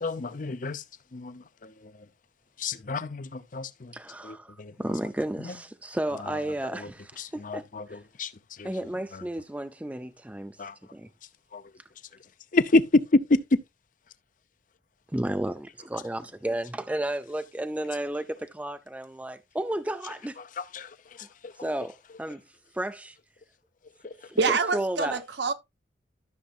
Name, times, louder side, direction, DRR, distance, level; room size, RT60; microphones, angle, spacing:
voice 1, 0.0-0.8 1.1-1.9 2.6-3.9 4.2-4.7 5.4-5.5 6.8-6.9 7.2-8.3 8.6-8.7 9.1-9.2 10.6-10.7 11.5-11.6 12.5-13.4 20.6-20.9 21.4-21.5 24.0-24.1, left 2 dB, 45° left, 0.6 m, -28 dB
voice 2, 3.9-8.0 8.6-10.6 10.9-11.1 15.1-20.4 21.2-21.3 21.6-22.4 22.7-23.2 24.3-25.2, right 1 dB, 10° right, 0.4 m, -33 dB
voice 3, 24.4-25.5, right 4 dB, 70° right, 0.9 m, -26 dB
13.0 x 6.5 x 2.4 m
head